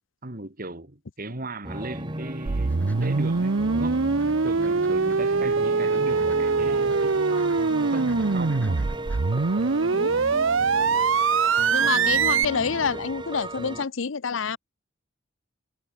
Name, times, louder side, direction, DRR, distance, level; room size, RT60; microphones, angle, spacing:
voice 1, 0.2-4.0 4.4-8.9, right 2 dB, 45° right, 3.0 m, -37 dB
sound 1, 1.6-13.9, right 1 dB, 25° right, 3.8 m, -36 dB
sound 2, 1.7-10.1, left 1 dB, 10° left, 7.0 m, -53 dB
sound 3, 2.5-12.5, right 4 dB, 75° right, 0.8 m, -23 dB
voice 2, 11.7-14.6, left 5 dB, 70° left, 0.7 m, -28 dB
head